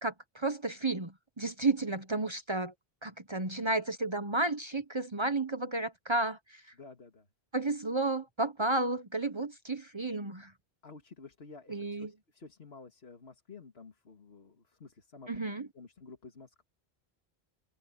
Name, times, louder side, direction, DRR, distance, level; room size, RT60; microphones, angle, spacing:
voice 1, 0.0-2.7 3.0-6.6 7.5-10.5 11.7-12.1 15.3-15.7, right 2 dB, 30° right, 1.0 m, -32 dB
voice 2, 6.7-7.3 10.8-15.3 15.7-16.6, left 4 dB, 80° left, 2.3 m, -51 dB
open air
omnidirectional pair, 1.0 m